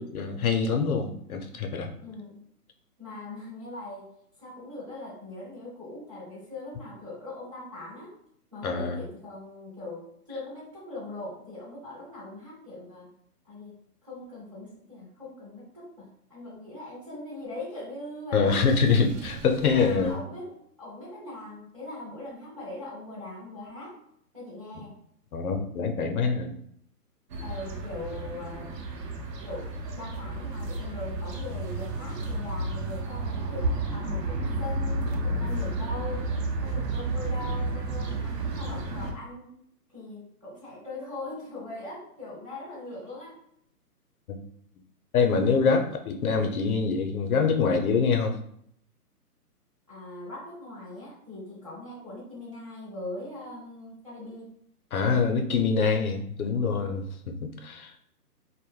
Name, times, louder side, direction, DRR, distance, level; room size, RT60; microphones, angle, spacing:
voice 1, 0.0-1.9 8.6-9.0 18.3-20.2 25.3-26.6 44.3-44.4 45.1-48.4 54.9-57.9, left 5 dB, 65° left, 4 dB, 0.5 m, -25 dB
voice 2, 2.0-2.4 3.0-4.1 4.4-8.1 8.5-13.1 13.4-18.6 19.6-24.0 24.3-24.9 27.4-28.8 29.4-39.6 39.9-43.4 49.9-54.5, left 2 dB, 25° right, -10 dB, 0.4 m, -41 dB
Water / Sink (filling or washing), 18.4-20.2, right 4 dB, 50° right, 0.8 m, -43 dB
sound 1, 27.3-39.1, right 2 dB, 85° right, 0.7 m, -31 dB
2.1 x 2.1 x 3.0 m, 0.69 s
hypercardioid pair, 150°, 47 cm